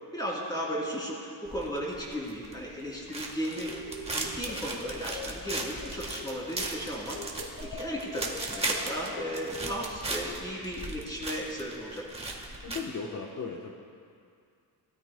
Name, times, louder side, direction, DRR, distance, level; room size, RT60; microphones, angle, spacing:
voice 1, 0.1-7.2 7.6-12.3, equal, 10° left, -4 dB, 2.9 m, -35 dB
sound 1, 1.5-12.8, right 2 dB, 15° right, 1.3 m, -37 dB
sound 2, 3.8-6.8 7.1-10.1, left 3 dB, 65° left, 1.8 m, -43 dB
voice 2, 12.6-13.7, left 5 dB, 50° left, -1 dB, 1.0 m, -36 dB
19.5 x 13.0 x 2.2 m, 2.3 s
cardioid pair, 135°, 40 cm